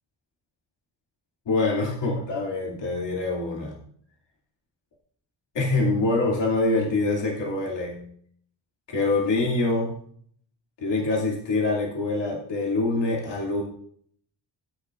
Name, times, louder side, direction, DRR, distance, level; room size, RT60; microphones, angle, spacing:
voice 1, 1.5-3.8 5.5-8.0 8.9-10.0 10.8-13.6, left 2 dB, 80° left, -3 dB, 2.6 m, -25 dB
15.0 x 9.4 x 2.5 m, 0.62 s
wide cardioid pair, 105°, 42 cm